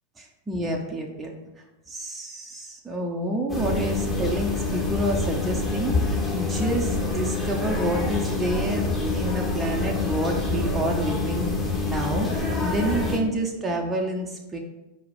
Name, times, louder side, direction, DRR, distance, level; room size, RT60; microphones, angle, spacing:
voice 1, 0.2-1.3 1.9-11.5 11.8-14.6, right 1 dB, 15° right, 0 dB, 0.9 m, -29 dB
sound 1, 3.5-13.2, left 3 dB, 10° left, 1.5 m, -26 dB
4.8 x 4.7 x 5.3 m, 1.0 s
figure-of-eight pair, 90°, 0 cm